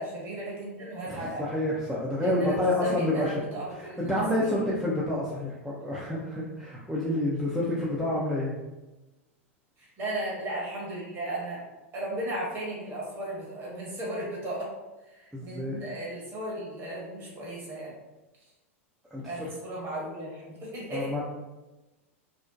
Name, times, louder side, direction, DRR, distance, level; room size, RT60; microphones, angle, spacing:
voice 1, 0.0-1.4 2.2-4.5 9.8-11.6 11.9-14.7 15.0-17.9 19.2-21.2, right 1 dB, 30° right, -4 dB, 1.0 m, -36 dB
voice 2, 1.4-3.4 3.8-8.5 15.3-15.8 19.1-19.5 20.9-21.2, left 1 dB, 5° right, -7 dB, 0.4 m, -28 dB
2.6 x 2.1 x 2.4 m, 1.1 s
figure-of-eight pair, 90°, 7 cm